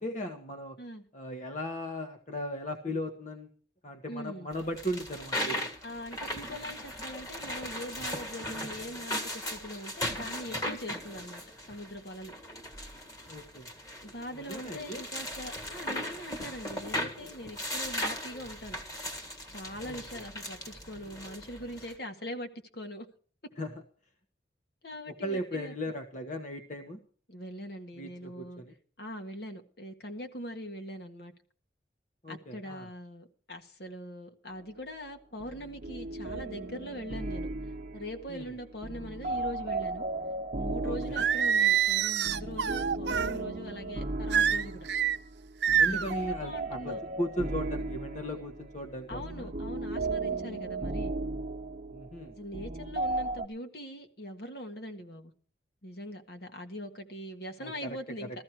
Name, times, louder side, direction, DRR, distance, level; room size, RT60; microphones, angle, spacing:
voice 1, 0.0-0.8 1.1-3.5 3.8-5.7 13.3-13.7 14.3-15.0 19.9-20.0 23.6-23.7 25.1-27.0 28.0-28.7 32.2-32.9 38.3-38.5 40.8-41.3 45.8-49.5 51.9-52.3 57.6-58.0, equal, 40° left, 1.4 m, -37 dB
voice 2, 4.1-4.5 5.8-12.3 14.0-18.8 19.5-23.1 24.8-25.7 27.3-28.6 29.0-31.3 32.3-37.5 37.9-40.1 40.6-44.9 45.9-47.0 49.1-51.1 52.4-55.3 55.8-58.3, equal, 55° left, 1.7 m, -42 dB
sound 1, 4.5-21.9, left 1 dB, 20° left, 1.7 m, -38 dB
sound 2, 35.4-53.5, right 2 dB, 40° right, 1.1 m, -36 dB
Singing, 41.2-43.3 44.3-45.2 45.6-46.1, right 8 dB, 65° right, 0.6 m, -26 dB
14.5 x 14.0 x 4.6 m
head